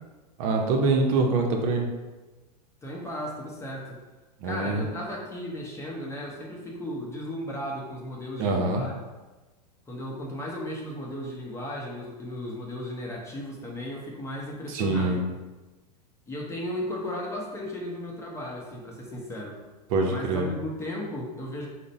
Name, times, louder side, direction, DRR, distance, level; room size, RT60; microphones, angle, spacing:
voice 1, 0.4-1.9 4.4-4.9 8.4-8.8 14.7-15.2 19.9-20.5, right 3 dB, 55° right, 2 dB, 0.6 m, -24 dB
voice 2, 2.8-4.0 4.4-8.9 9.9-15.2 16.3-19.6 20.1-21.7, left 1 dB, 15° left, -2 dB, 0.7 m, -35 dB
3.8 x 2.1 x 4.0 m, 1.2 s
hypercardioid pair, 105°, 21 cm